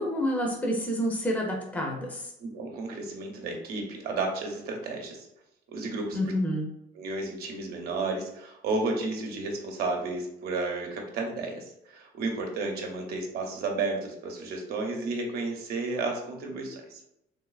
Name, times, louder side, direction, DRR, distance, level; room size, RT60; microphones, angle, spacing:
voice 1, 0.0-2.3 6.1-6.7, equal, 10° left, 0 dB, 0.7 m, -28 dB
voice 2, 2.4-5.3 5.7-6.2 6.9-17.0, right 3 dB, 65° right, 1 dB, 0.9 m, -32 dB
3.4 x 3.1 x 2.4 m, 0.81 s
cardioid pair, 110°, 17 cm